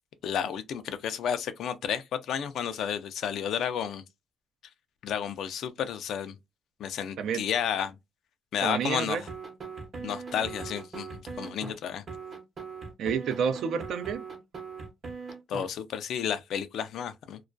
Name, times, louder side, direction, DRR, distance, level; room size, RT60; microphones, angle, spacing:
voice 1, 0.2-4.0 5.0-6.3 6.8-7.9 8.5-9.2 10.0-12.0 15.5-17.4, left 8 dB, 75° left, 0.4 m, -31 dB
voice 2, 8.6-9.2 10.0-10.1 13.0-14.2, right 7 dB, 75° right, 0.4 m, -29 dB
sound 1, 9.3-11.7 12.1-15.7, right 5 dB, 45° right, 0.8 m, -40 dB
2.3 x 2.2 x 2.4 m
cardioid pair, 90°, 0 cm